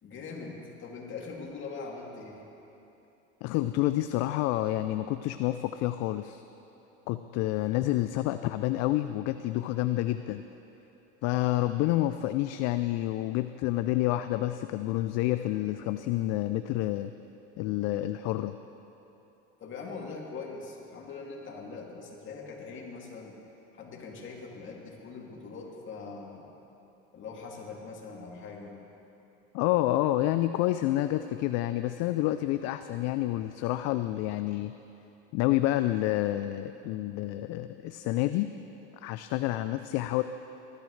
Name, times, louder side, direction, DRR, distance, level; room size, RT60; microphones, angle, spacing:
voice 1, 0.0-2.5 19.6-23.3 23.7-26.5 27.1-28.8, left 4 dB, 40° left, -2 dB, 2.6 m, -42 dB
voice 2, 3.4-6.4 7.1-10.4 11.2-17.1 17.6-18.6 29.5-34.7 35.3-38.5 39.0-40.2, left 15 dB, 60° left, 10 dB, 0.5 m, -28 dB
19.5 x 12.5 x 3.2 m, 3.0 s
supercardioid pair, 100°, 29 cm